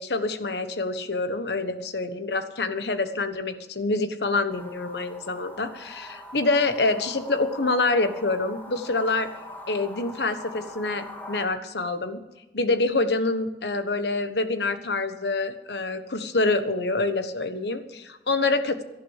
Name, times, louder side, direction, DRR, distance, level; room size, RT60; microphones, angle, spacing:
voice 1, 0.0-9.3 9.7-12.2 12.5-18.8, left 3 dB, 70° left, 9 dB, 1.3 m, -26 dB
sound 1, 4.5-11.5, equal, 10° left, 2.1 m, -43 dB
17.5 x 12.0 x 4.9 m, 1.0 s
head